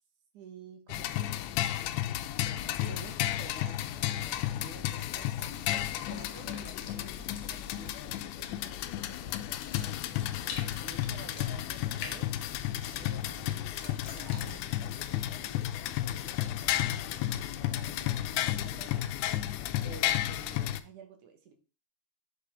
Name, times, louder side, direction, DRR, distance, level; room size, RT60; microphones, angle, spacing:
voice 1, 0.3-1.5 2.5-10.0 10.8-19.1 19.8-21.5, right 5 dB, 60° right, 5 dB, 2.3 m, -51 dB
sound 1, 0.9-20.8, left 13 dB, 85° left, 2.9 m, -33 dB
sound 2, 4.8-16.0, left 6 dB, 60° left, 2.8 m, -48 dB
9.3 x 7.0 x 3.7 m, 0.32 s
omnidirectional pair, 5.0 m